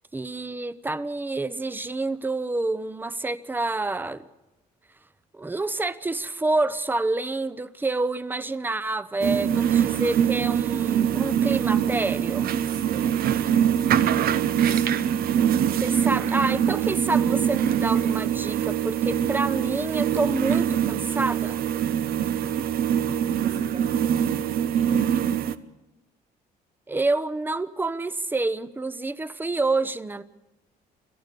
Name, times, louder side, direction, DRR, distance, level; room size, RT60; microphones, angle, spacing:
voice 1, 0.1-4.2 5.3-12.5 15.8-21.6 26.9-30.2, right 2 dB, 10° right, 0.8 m, -28 dB
sound 1, 9.2-25.6, right 9 dB, 60° right, 0.9 m, -23 dB
voice 2, 12.6-16.1 21.8-22.6 23.2-25.5, right 5 dB, 40° right, 2.9 m, -43 dB
27.0 x 14.5 x 6.9 m
cardioid pair, 110°, 17 cm